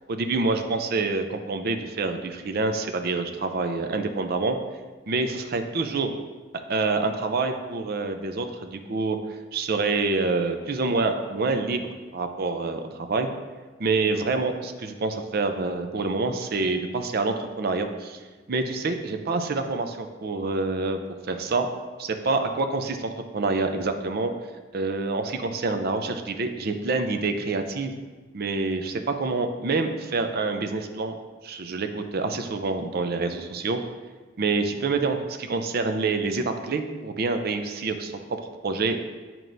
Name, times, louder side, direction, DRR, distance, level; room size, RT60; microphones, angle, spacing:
voice 1, 0.1-4.6 5.1-6.2 6.7-9.2 9.5-13.3 13.8-18.2 18.5-21.0 21.3-21.7 22.0-24.3 24.7-27.9 28.3-31.1 31.4-33.8 34.4-38.1 38.6-39.0, right 3 dB, 55° right, 7 dB, 0.5 m, -27 dB
9.1 x 4.5 x 2.6 m, 1.3 s
head